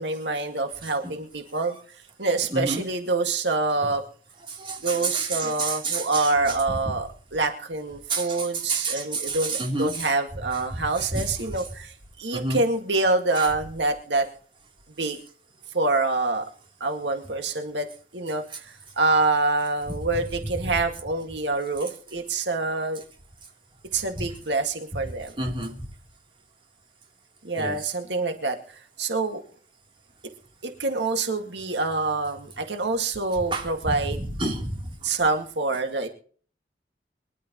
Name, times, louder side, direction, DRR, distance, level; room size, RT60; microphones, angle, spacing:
voice 1, 0.0-1.8 2.2-4.0 4.8-14.3 15.0-15.2 15.7-16.5 16.8-17.9 18.1-23.0 23.9-25.3 27.4-28.6 29.0-29.4 30.6-34.2 35.0-36.1, right 3 dB, 90° right, 5 dB, 2.1 m, -26 dB
voice 2, 2.5-2.8 4.5-6.6 8.1-10.1 10.8-11.3 12.3-12.6 13.4-13.5 24.2-24.3 25.4-25.7 27.6-27.9 33.5-33.9 34.4-34.8, right 3 dB, 30° right, 1 dB, 3.4 m, -29 dB
24.0 x 12.0 x 3.1 m, 0.44 s
head